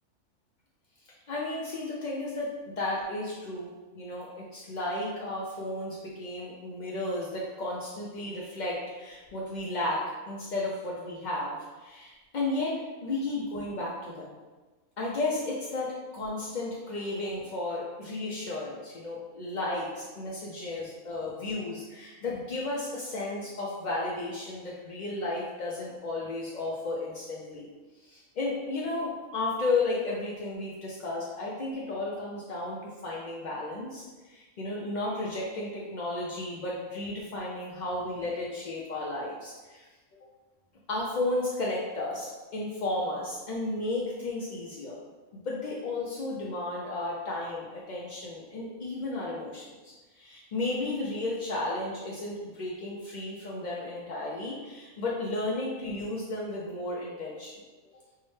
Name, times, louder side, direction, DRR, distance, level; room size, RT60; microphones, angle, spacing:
voice 1, 1.3-3.7 3.9-14.4 15.0-27.7 28.0-39.8 40.9-45.0 45.3-57.6, left 2 dB, 80° left, -5 dB, 0.4 m, -33 dB
4.5 x 2.1 x 3.1 m, 1.2 s
omnidirectional pair, 1.4 m